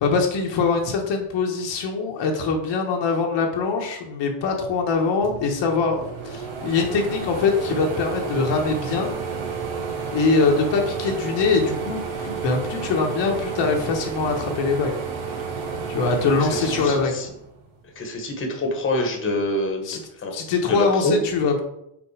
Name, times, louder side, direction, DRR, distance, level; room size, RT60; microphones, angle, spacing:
voice 1, 0.0-9.1 10.1-15.0 15.9-17.1 19.8-20.0 20.3-21.6, left 4 dB, 65° left, 1 dB, 1.3 m, -23 dB
sound 1, 4.9-5.0 5.2-17.8 18.3-19.4, right 5 dB, 75° right, 1.5 m, -31 dB
voice 2, 16.4-17.3 17.9-19.9 20.2-20.4 20.7-21.2, left 2 dB, 25° left, 3 dB, 1.3 m, -26 dB
5.4 x 4.1 x 4.9 m, 0.79 s
cardioid pair, 115°, 47 cm